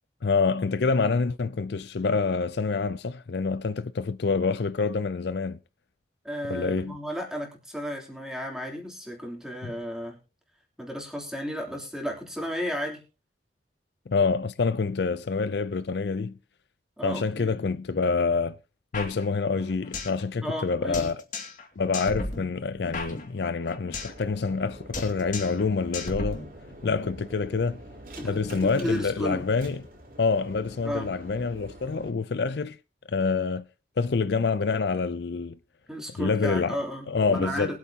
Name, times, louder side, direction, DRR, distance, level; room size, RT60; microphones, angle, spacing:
voice 1, 0.2-5.6 6.4-7.0 9.6-9.7 14.1-16.3 17.0-18.6 18.9-21.2 21.8-26.4 26.8-27.8 28.2-29.8 30.2-32.8 33.1-33.6 34.0-35.6 36.2-36.8 37.1-37.8, left 4 dB, 65° left, 0.5 m, -27 dB
voice 2, 6.2-10.2 10.8-13.0 17.0-17.5 20.4-21.1 28.2-29.5 30.8-31.1 35.9-37.8, equal, 5° right, 3.2 m, -33 dB
sound 1, 18.9-20.2 20.5-20.6 20.9-21.7 21.9-24.2 24.5-24.7 24.9-25.7 25.9-26.9, left 3 dB, 45° left, 2.4 m, -35 dB
sound 2, 23.9-32.1, right 1 dB, 50° right, 3.6 m, -46 dB
23.0 x 8.4 x 2.8 m
head